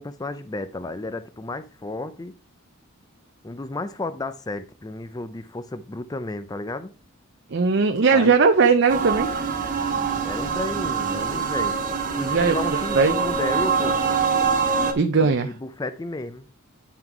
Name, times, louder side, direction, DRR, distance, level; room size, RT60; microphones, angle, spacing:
voice 1, 0.0-2.3 3.4-6.9 8.1-8.3 10.2-11.8 12.1-14.0 15.2-16.5, left 2 dB, 20° left, 0.4 m, -32 dB
voice 2, 7.5-9.3 12.2-13.3 15.0-15.5, right 4 dB, 55° right, 0.6 m, -19 dB
sound 1, 8.9-14.9, right 5 dB, 40° right, 1.4 m, -24 dB
9.6 x 3.8 x 4.5 m
head